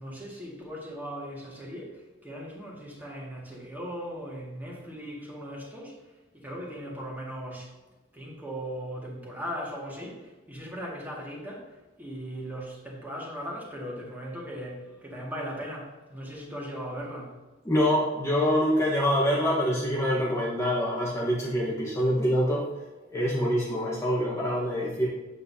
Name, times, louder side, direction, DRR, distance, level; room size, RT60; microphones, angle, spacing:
voice 1, 0.0-6.0 6.3-7.7 8.1-11.7 12.0-17.4, equal, 10° right, -4 dB, 2.0 m, -38 dB
voice 2, 17.6-22.6 23.1-25.1, equal, 15° left, -6 dB, 1.3 m, -25 dB
8.4 x 8.0 x 2.8 m, 1.2 s
head